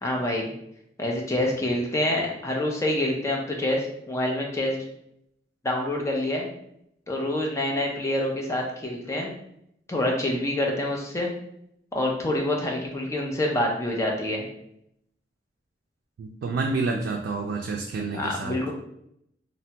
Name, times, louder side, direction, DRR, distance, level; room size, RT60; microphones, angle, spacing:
voice 1, 0.0-0.5 1.0-4.8 5.6-6.5 7.1-9.3 9.9-11.3 11.9-14.5 18.1-18.7, left 1 dB, 15° left, -1 dB, 0.5 m, -26 dB
voice 2, 16.2-18.5, right 3 dB, 90° right, 2 dB, 0.3 m, -29 dB
3.2 x 2.1 x 2.7 m, 0.76 s
head